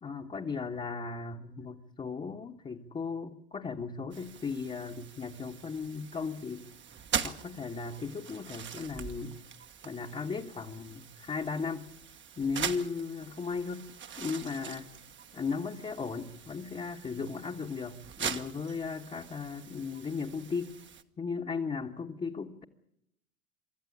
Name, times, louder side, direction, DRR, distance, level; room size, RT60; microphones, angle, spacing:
voice 1, 0.0-6.7 7.2-9.3 9.8-11.9 12.4-13.9 14.2-14.9 15.3-20.7 21.2-22.6, left 5 dB, 15° left, -1 dB, 1.4 m, -36 dB
sound 1, 4.1-21.0, right 7 dB, 25° right, 1.2 m, -42 dB
24.5 x 13.5 x 10.0 m, 0.80 s
hypercardioid pair, 90°, 43 cm